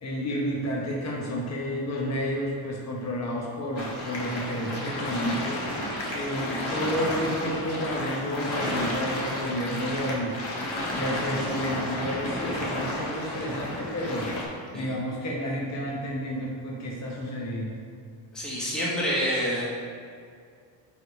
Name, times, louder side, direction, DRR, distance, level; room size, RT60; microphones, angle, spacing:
voice 1, 0.0-10.4 10.9-17.7, equal, 35° left, -3 dB, 1.0 m, -31 dB
sound 1, 3.8-14.4, left 1 dB, 55° left, 1.4 m, -32 dB
voice 2, 18.3-19.6, equal, ahead, -7 dB, 1.0 m, -27 dB
5.0 x 5.0 x 5.2 m, 2.3 s
cardioid pair, 150°, 48 cm